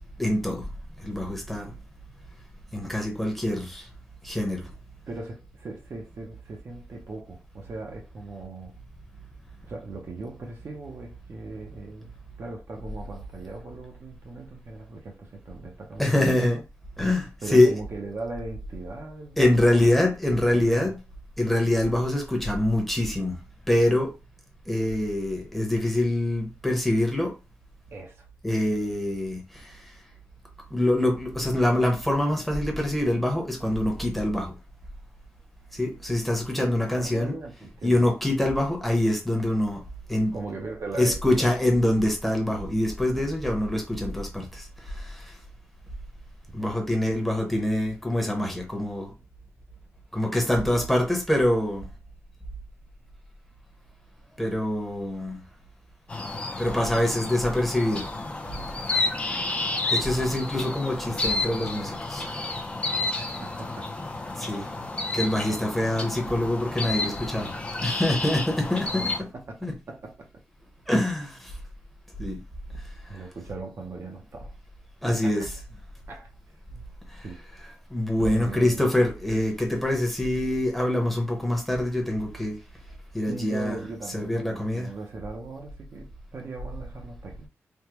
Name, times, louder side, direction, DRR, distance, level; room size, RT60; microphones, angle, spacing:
voice 1, 0.2-0.6 1.0-1.7 2.7-3.9 4.2-4.7 16.0-16.6 17.0-17.8 19.4-21.0 21.4-23.4 23.7-24.1 24.7-27.3 28.4-29.9 30.7-34.5 35.7-37.3 37.8-39.8 40.1-40.4 40.9-45.4 46.5-49.1 50.1-51.9 54.4-55.4 56.6-58.1 59.9-62.3 64.4-64.7 65.1-67.5 67.8-69.3 69.6-69.7 70.9-71.5 72.2-72.4 75.0-75.6 77.1-82.6 83.1-83.8 84.1-84.9, left 1 dB, ahead, 0.8 m, -25 dB
voice 2, 5.1-8.7 9.6-12.1 12.4-16.6 17.4-19.9 20.5-20.9 27.9-28.3 36.9-38.1 40.3-41.5 46.6-46.8 63.4-63.9 64.3-64.5 64.8-64.9 65.5-65.6 69.5-70.3 73.1-74.5 75.1-75.5 76.1-76.3 76.7-76.8 77.2-77.4 78.3-78.9 83.3-87.5, right 3 dB, 55° right, 0.6 m, -39 dB
sound 1, 56.1-69.2, left 2 dB, 20° left, 0.5 m, -31 dB
3.4 x 2.2 x 3.0 m
wide cardioid pair, 165°, 5 cm